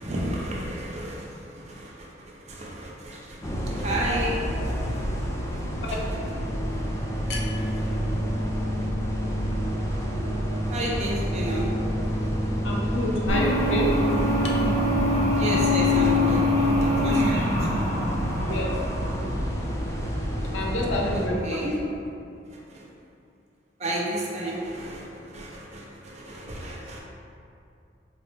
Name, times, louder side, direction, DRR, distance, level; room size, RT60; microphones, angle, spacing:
voice 1, 0.0-5.6 5.8-6.0 7.1-7.2 7.6-8.0 10.7-11.7 15.4-17.8 18.5-18.6 21.1-21.8 22.5-22.8 23.8-27.0, right 1 dB, 35° right, -4 dB, 0.5 m, -33 dB
sound 1, 3.4-21.3, equal, 15° left, 0.3 m, -28 dB
voice 2, 12.6-13.9 14.4-14.5 18.5-18.7 20.5-21.4, left 1 dB, 80° left, -2 dB, 0.5 m, -27 dB
sound 2, 13.3-19.6, left 2 dB, 85° right, 0.9 m, -24 dB
4.1 x 2.0 x 3.2 m, 2.5 s
head